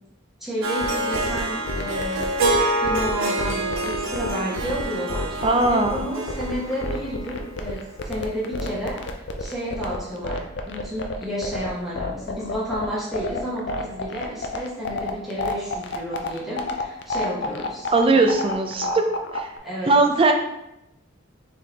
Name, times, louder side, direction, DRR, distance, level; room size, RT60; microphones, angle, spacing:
voice 1, 0.4-2.5 2.8-5.3 5.7-18.2 18.8-19.0 19.6-19.9, equal, ahead, -9 dB, 1.2 m, -31 dB
Harp, 0.6-7.8, right 1 dB, 80° right, 0.6 m, -27 dB
sound 1, 0.8-19.6, left 3 dB, 55° left, 0.4 m, -29 dB
voice 2, 5.4-6.1 17.9-19.0 19.3-19.5 19.9-20.3, right 3 dB, 25° right, 5 dB, 0.4 m, -19 dB
4.9 x 3.5 x 2.9 m, 0.87 s
head